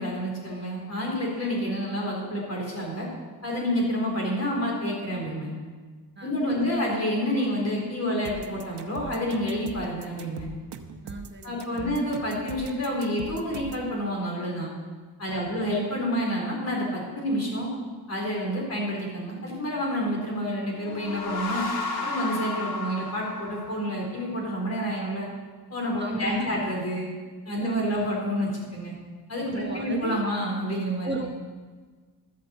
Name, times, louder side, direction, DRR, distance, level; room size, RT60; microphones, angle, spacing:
voice 1, 0.0-3.1 3.4-5.5 6.2-10.5 11.4-14.7 15.2-17.7 18.1-21.7 22.0-25.3 25.7-27.1 27.5-29.0 29.3-31.1, equal, 40° left, -2 dB, 4.3 m, -29 dB
voice 2, 6.2-6.7 11.0-12.0 15.3-15.6 26.0-26.7 27.6-28.1 29.5-30.2 31.0-31.3, right 2 dB, 25° right, 2 dB, 1.0 m, -35 dB
sound 1, 8.2-13.9, right 6 dB, 75° right, 1.0 m, -41 dB
sound 2, 20.7-24.3, left 3 dB, 65° left, 2.3 m, -33 dB
12.5 x 8.4 x 7.9 m, 1.5 s
wide cardioid pair, 130°, 40 cm